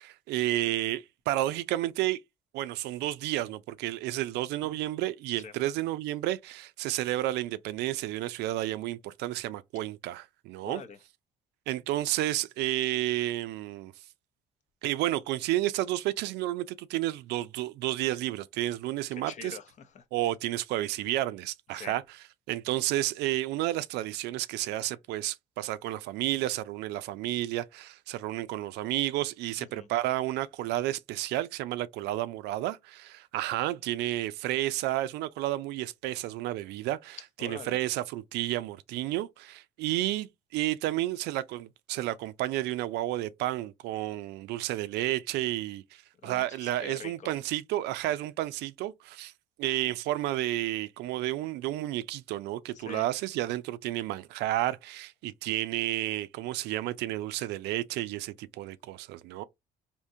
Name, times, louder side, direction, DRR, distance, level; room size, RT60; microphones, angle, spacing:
voice 1, 0.0-2.2 2.5-10.8 11.7-13.9 14.8-19.6 20.1-22.0 22.5-49.3 49.6-59.4, right 15 dB, 80° right, 0.4 m, -31 dB
voice 2, 10.6-11.0 19.1-20.0 21.7-21.9 29.6-29.9 37.4-37.8 46.2-47.3 52.7-53.1, left 6 dB, 45° left, 0.6 m, -44 dB
3.5 x 2.7 x 2.7 m
cardioid pair, 110°, 17 cm